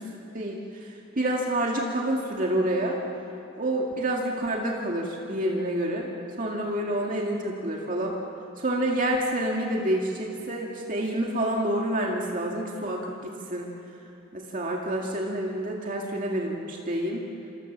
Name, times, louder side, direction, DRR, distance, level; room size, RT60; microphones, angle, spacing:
voice 1, 0.3-3.0 3.6-6.1 6.4-8.1 8.6-13.7 14.3-17.2, right 1 dB, 45° right, -1 dB, 2.1 m, -28 dB
28.0 x 26.5 x 7.3 m, 2.9 s
head